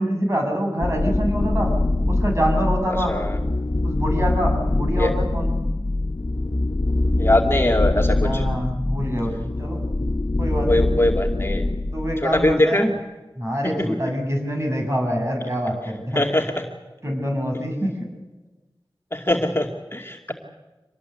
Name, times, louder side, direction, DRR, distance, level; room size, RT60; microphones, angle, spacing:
voice 1, 0.0-1.7 2.1-3.2 3.8-5.6 8.1-9.8 10.4-10.9 11.9-12.9 13.4-16.2 17.0-18.1, equal, 35° right, 1 dB, 7.3 m, -25 dB
sound 1, 0.8-12.5, left 2 dB, 55° left, 1.3 m, -23 dB
voice 2, 3.1-3.4 5.0-5.1 7.2-8.4 10.7-11.6 12.2-12.9 13.8-14.0 16.2-16.6 19.1-20.3, left 1 dB, 30° left, 2 dB, 2.4 m, -22 dB
26.0 x 19.5 x 8.3 m, 1.1 s
wide cardioid pair, 50°, 9 cm